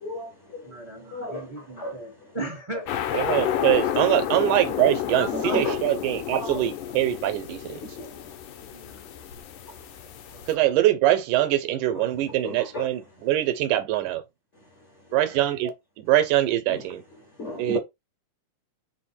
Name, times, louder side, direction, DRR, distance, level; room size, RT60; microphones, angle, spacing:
voice 1, 0.0-0.7 1.1-2.0 3.1-3.2 5.3-5.8 6.3-6.6 7.8-8.2 12.4-12.9 16.7-16.8 17.4-17.8, left 1 dB, 50° left, 0.8 m, -33 dB
voice 2, 0.6-2.8 4.0-4.1 5.2-5.6 8.7-9.1 15.1-15.4, right 1 dB, 30° right, 0.5 m, -37 dB
sound 1, 2.9-10.5, left 11 dB, 85° left, 2.0 m, -30 dB
voice 3, 3.1-7.8 10.5-14.2 15.1-17.0 17.6-17.8, right 13 dB, 85° right, 2.2 m, -23 dB
4.9 x 2.0 x 4.3 m
omnidirectional pair, 3.5 m